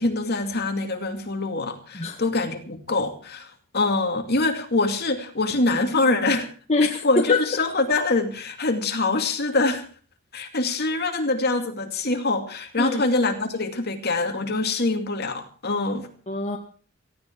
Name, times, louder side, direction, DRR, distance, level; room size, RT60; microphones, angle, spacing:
voice 1, 0.0-6.5 7.0-9.9 10.3-16.1, left 3 dB, 50° left, 5 dB, 2.5 m, -24 dB
voice 2, 6.7-7.4 12.8-13.0 16.3-16.6, left 3 dB, 30° left, 1 dB, 1.7 m, -23 dB
18.0 x 15.5 x 4.6 m, 0.40 s
head